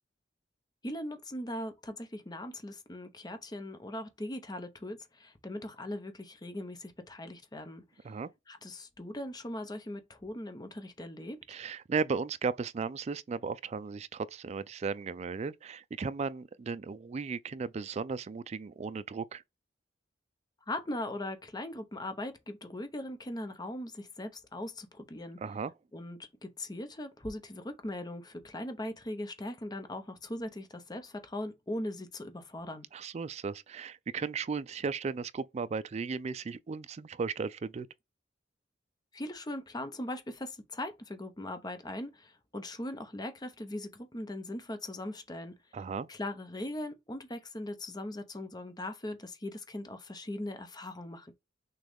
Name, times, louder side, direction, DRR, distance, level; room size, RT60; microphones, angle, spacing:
voice 1, 0.8-7.8 8.5-11.6 20.7-25.4 25.9-32.9 39.1-45.5 46.1-51.3, left 1 dB, 20° left, 0.8 m, -40 dB
voice 2, 11.5-19.4 25.4-25.7 32.9-37.9 45.7-46.1, right 5 dB, 35° right, 0.3 m, -35 dB
6.3 x 2.3 x 3.5 m
head